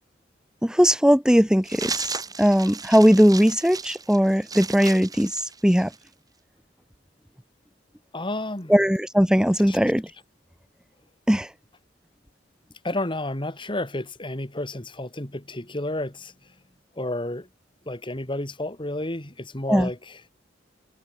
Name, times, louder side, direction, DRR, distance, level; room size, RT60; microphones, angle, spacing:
voice 1, 0.6-5.9 8.7-10.1 11.3-11.5 19.7-19.9, equal, 5° right, 1.9 m, -19 dB
sound 1, 1.6-6.1, right 5 dB, 20° right, 2.4 m, -35 dB
voice 2, 8.1-8.7 9.7-9.8 12.8-16.5 17.0-17.5 17.9-20.2, left 1 dB, 25° left, 2.8 m, -31 dB
head